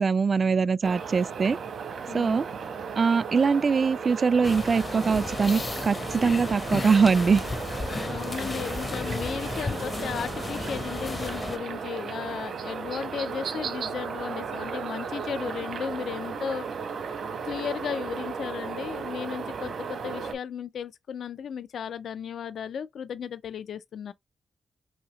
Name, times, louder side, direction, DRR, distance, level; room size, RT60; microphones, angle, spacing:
voice 1, 0.0-1.6 2.1-2.5 3.0-7.4, right 5 dB, 45° right, 0.3 m, -22 dB
sound 1, 0.8-20.3, right 6 dB, 80° right, 1.0 m, -35 dB
voice 2, 2.1-2.4 8.0-16.7 17.0-17.2 17.4-24.1, left 7 dB, 85° left, 0.3 m, -35 dB
sound 2, 4.4-11.6, left 3 dB, 35° left, 0.6 m, -34 dB
5.5 x 2.8 x 2.9 m
cardioid pair, 100°, 0 cm